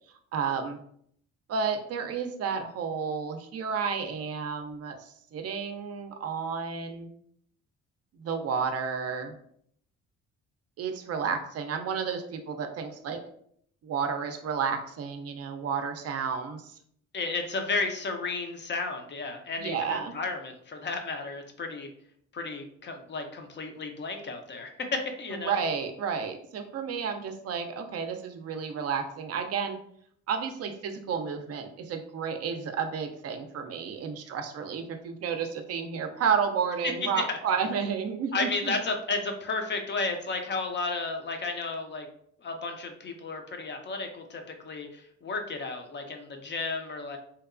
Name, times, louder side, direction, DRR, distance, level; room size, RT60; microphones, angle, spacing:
voice 1, 0.3-0.8 1.5-7.1 8.1-9.3 10.8-13.2 13.8-16.8 19.6-20.1 25.3-29.8 30.3-38.7, right 6 dB, 55° right, 6 dB, 0.4 m, -31 dB
voice 2, 17.1-21.9 22.3-25.6 36.8-37.4 38.3-42.1 42.4-47.2, left 3 dB, 40° left, 5 dB, 0.5 m, -33 dB
2.8 x 2.2 x 2.4 m, 0.67 s
cardioid pair, 90°, 30 cm